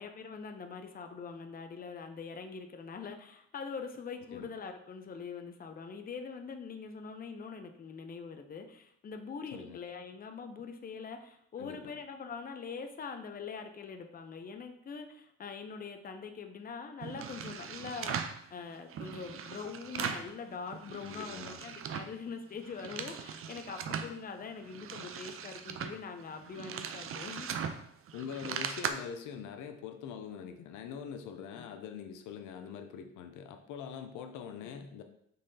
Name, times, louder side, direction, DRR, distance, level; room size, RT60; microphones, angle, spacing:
voice 1, 0.0-27.5 31.5-31.6 34.7-34.9, left 5 dB, 30° left, 6 dB, 0.6 m, -43 dB
voice 2, 11.6-12.0 21.0-21.6 28.1-35.0, left 7 dB, 90° left, 6 dB, 0.5 m, -43 dB
sound 1, 17.0-18.4 18.9-20.3 20.7-22.2 22.5-24.1 24.6-28.9, right 7 dB, 45° right, 0.4 m, -39 dB
5.4 x 3.2 x 2.7 m, 0.72 s
cardioid pair, 90°, 30 cm